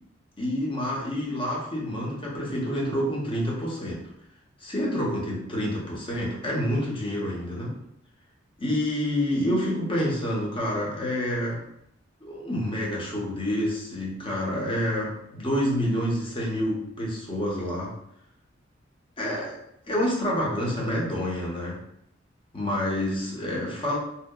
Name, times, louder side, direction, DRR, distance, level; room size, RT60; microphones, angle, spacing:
voice 1, 0.4-4.0 4.6-7.7 8.6-11.6 12.2-17.9 19.2-19.6 19.9-21.8 22.5-24.0, equal, 25° left, -4 dB, 0.7 m, -28 dB
2.7 x 2.0 x 2.2 m, 0.74 s
head